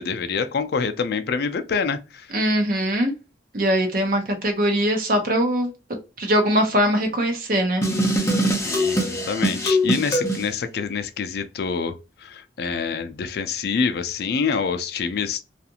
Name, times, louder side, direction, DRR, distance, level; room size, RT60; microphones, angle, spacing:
voice 1, 0.0-2.3 8.6-15.4, left 5 dB, 60° left, 0.4 m, -26 dB
voice 2, 2.3-3.1 3.5-5.7 6.2-7.8, equal, 50° right, 0.7 m, -21 dB
sound 1, 7.8-10.5, equal, 15° left, 0.6 m, -22 dB
2.4 x 2.4 x 2.7 m
head